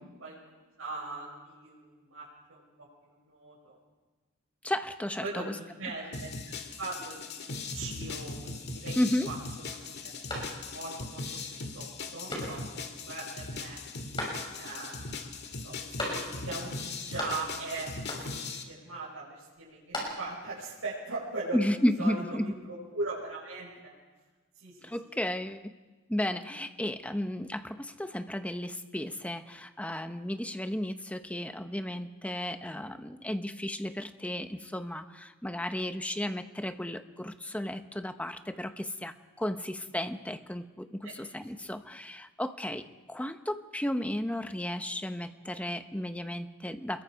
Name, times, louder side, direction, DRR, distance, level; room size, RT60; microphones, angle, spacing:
voice 1, 0.8-2.7 3.1-3.8 5.2-11.2 11.7-11.9 12.1-13.8 14.6-21.6 22.0-23.9 24.6-25.2 41.0-41.1 41.6-41.7, right 3 dB, 80° right, -6 dB, 5.8 m, -40 dB
voice 2, 4.6-5.6 5.9-6.0 9.0-9.3 21.5-22.5 24.8-25.7 26.1-47.0, left 1 dB, 5° left, 9 dB, 0.8 m, -33 dB
sound 1, 6.1-18.6, left 3 dB, 55° left, 1.8 m, -39 dB
sound 2, 10.3-11.0 11.4-11.5 12.3-12.9 14.2-14.8 16.0-16.6 16.8-17.7 18.1-18.6 19.6-20.5, left 1 dB, 25° left, 6.5 m, -38 dB
27.0 x 22.0 x 4.7 m, 1.3 s
head